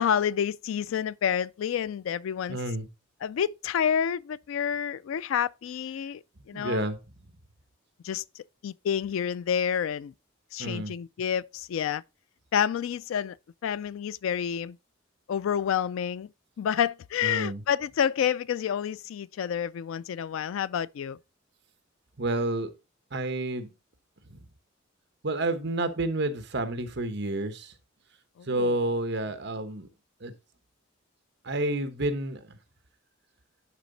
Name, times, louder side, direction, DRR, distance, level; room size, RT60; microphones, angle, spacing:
voice 1, 0.0-2.6 3.2-6.2 6.5-6.9 8.0-8.2 8.6-10.1 10.5-12.0 12.5-13.4 13.6-14.8 15.3-16.3 16.6-21.2 28.4-28.7, left 8 dB, 80° left, 0.3 m, -29 dB
voice 2, 2.5-2.9 6.5-7.0 10.6-10.9 17.2-17.6 22.2-22.7 23.1-23.7 24.3-24.4 25.2-27.7 28.5-29.9 30.2-30.3 31.4-32.4, right 2 dB, 60° right, 1.1 m, -29 dB
10.5 x 4.0 x 4.0 m
head